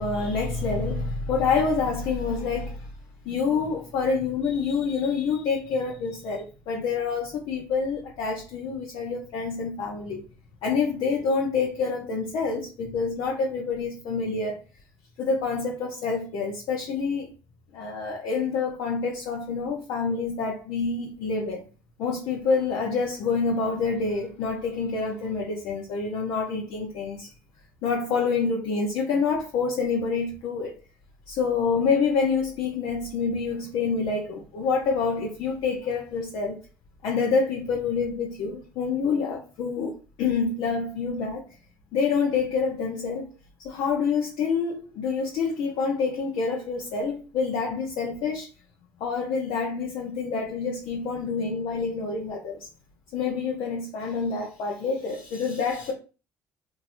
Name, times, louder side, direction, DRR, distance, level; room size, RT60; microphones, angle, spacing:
voice 1, 0.0-2.9 3.2-10.2 10.6-14.6 15.2-17.3 17.7-21.6 22.0-27.3 27.8-30.8 31.3-36.6 37.0-41.4 41.9-43.2 43.6-48.5 49.0-52.7 53.1-55.9, left 5 dB, 70° left, 0.7 m, -27 dB
2.9 x 2.8 x 2.6 m
hypercardioid pair, 65°, 8 cm